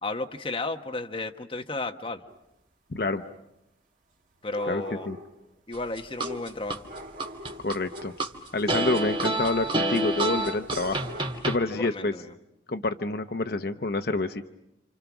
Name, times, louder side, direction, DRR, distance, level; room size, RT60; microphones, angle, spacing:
voice 1, 0.0-2.2 4.4-5.1 5.7-6.8 11.7-12.3, left 2 dB, 30° left, 4 dB, 1.1 m, -33 dB
sound 1, 2.3-2.4 4.5-5.4 6.2-8.3 10.3-11.2, left 1 dB, 45° right, 2.0 m, -42 dB
voice 2, 4.7-5.2 7.6-8.1 8.5-11.0 11.5-12.1 12.7-14.5, left 2 dB, 55° left, 8 dB, 0.9 m, -28 dB
sound 2, 5.7-6.8 7.2-8.3 8.7-11.6, right 2 dB, 30° right, 2.1 m, -28 dB
29.0 x 27.5 x 6.1 m, 0.86 s
head